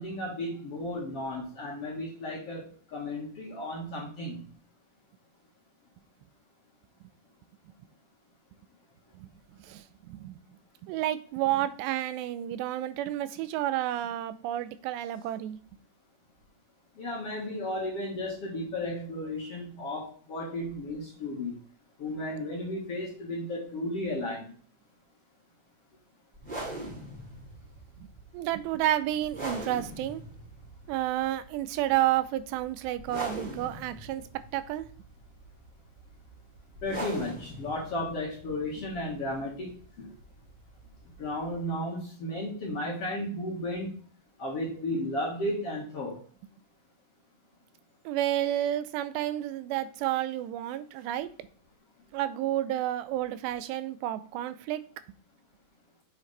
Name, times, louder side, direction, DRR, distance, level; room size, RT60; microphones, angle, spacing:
voice 1, 0.0-4.5 17.0-21.6 22.0-24.5 36.8-40.1 41.2-44.0 44.4-46.2, left 1 dB, 50° left, -3 dB, 2.0 m, -34 dB
voice 2, 9.6-10.3 10.8-15.6 28.0-28.1 28.3-30.2 30.9-34.2 34.5-34.9 48.1-51.3 52.1-54.9, right 13 dB, 90° right, 13 dB, 2.9 m, -30 dB
sound 1, 26.4-41.7, right 1 dB, 10° right, 4.2 m, -42 dB
7.8 x 7.5 x 3.3 m, 0.42 s
omnidirectional pair, 4.8 m